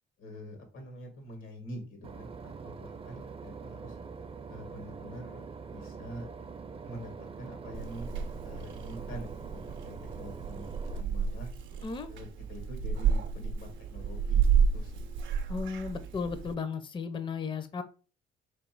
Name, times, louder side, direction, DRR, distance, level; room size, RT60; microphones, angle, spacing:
voice 1, 0.2-4.0 4.5-6.3 6.8-8.1 8.4-11.5 12.1-15.1, equal, 90° left, 3 dB, 1.7 m, -45 dB
Boat Water vehicle / Engine, 2.0-11.0, right 5 dB, 30° right, 0.4 m, -44 dB
Purr / Meow, 7.7-16.5, right 6 dB, 70° right, 0.6 m, -31 dB
voice 2, 15.5-17.8, left 5 dB, 25° left, 10 dB, 0.5 m, -35 dB
3.4 x 3.1 x 4.6 m, 0.36 s
cardioid pair, 90°, 20 cm